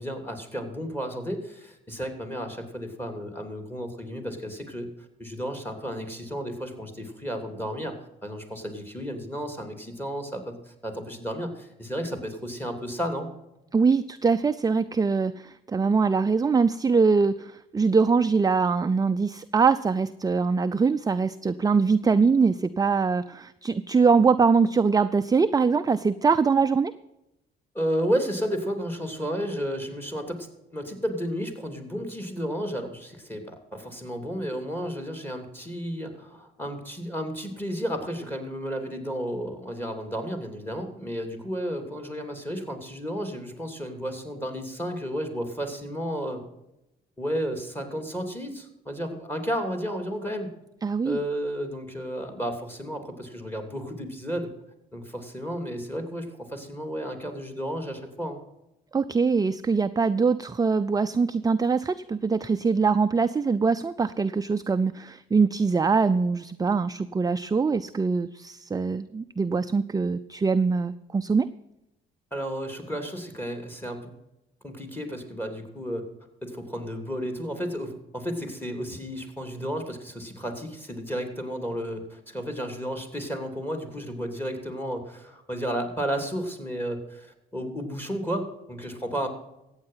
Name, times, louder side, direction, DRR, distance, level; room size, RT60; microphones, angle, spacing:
voice 1, 0.0-4.9 5.2-7.9 8.2-13.3 27.7-46.4 47.2-50.5 51.0-54.5 54.9-58.4 72.3-74.1 74.6-76.0 76.4-89.3, equal, 10° left, 6 dB, 3.0 m, -32 dB
voice 2, 13.7-26.9 50.8-51.2 58.9-71.5, right 5 dB, 20° right, 10 dB, 0.5 m, -23 dB
14.5 x 8.8 x 5.6 m, 0.88 s
cardioid pair, 90°, 20 cm